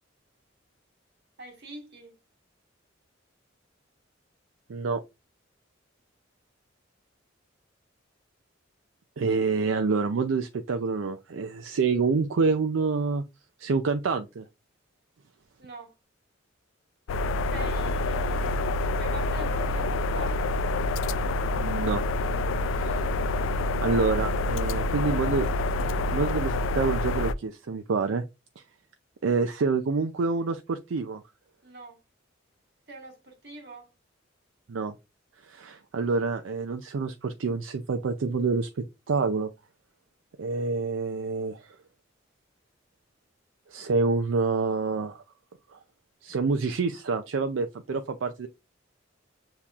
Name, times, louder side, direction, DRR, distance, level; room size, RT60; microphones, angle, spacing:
voice 1, 1.4-2.1 15.6-15.9 17.5-18.6 19.0-20.6 31.6-32.0 32.9-33.9, right 3 dB, 55° right, 1.6 m, -44 dB
voice 2, 4.7-5.0 9.2-13.2 13.6-14.5 21.6-22.0 22.7-23.1 23.8-25.5 26.1-28.2 29.2-31.2 34.7-34.9 35.4-39.5 40.4-41.7 43.7-45.2 45.7-45.8 46.2-48.5, right 4 dB, 80° right, 0.4 m, -27 dB
sound 1, 17.1-27.3, left 2 dB, 80° left, 0.4 m, -27 dB
6.9 x 2.9 x 2.4 m
head